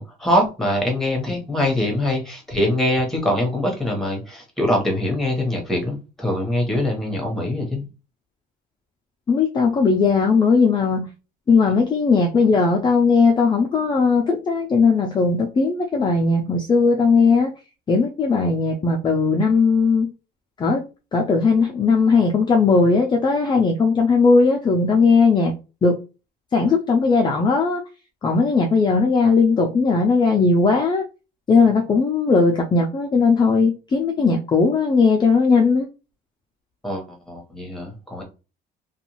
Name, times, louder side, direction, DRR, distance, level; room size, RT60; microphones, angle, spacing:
voice 1, 0.0-7.8 36.8-38.2, left 1 dB, ahead, 1 dB, 1.1 m, -23 dB
voice 2, 9.3-11.1 11.5-17.5 17.9-20.1 20.6-20.8 21.1-25.5 25.8-26.0 26.5-27.8 28.2-31.0 31.5-35.9, left 4 dB, 25° left, 1 dB, 0.5 m, -18 dB
2.5 x 2.3 x 3.0 m, 0.31 s
cardioid pair, 110°, 17 cm